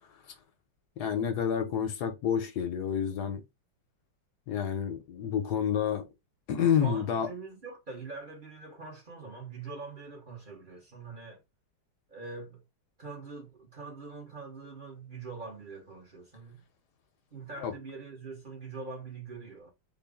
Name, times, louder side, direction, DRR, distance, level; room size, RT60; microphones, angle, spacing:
voice 1, 1.0-3.4 4.5-6.1 6.5-7.3 17.6-17.7, left 8 dB, 70° left, 1.2 m, -29 dB
voice 2, 6.5-11.4 12.1-12.6 13.0-16.6 17.3-19.7, right 4 dB, 35° right, 1.1 m, -43 dB
3.7 x 2.3 x 3.4 m
omnidirectional pair, 1.9 m